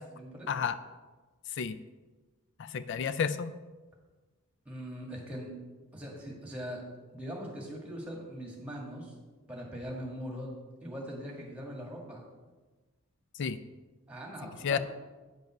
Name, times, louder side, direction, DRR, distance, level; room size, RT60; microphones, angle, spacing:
voice 1, 0.2-0.5 4.7-5.6 5.9-6.9 7.1-9.1 9.5-10.5 10.8-12.3 14.1-14.8, equal, 5° right, -1 dB, 1.9 m, -41 dB
voice 2, 2.6-3.5 13.4-13.6 14.6-14.8, left 6 dB, 55° left, 13 dB, 0.4 m, -31 dB
9.1 x 5.4 x 5.9 m, 1.3 s
head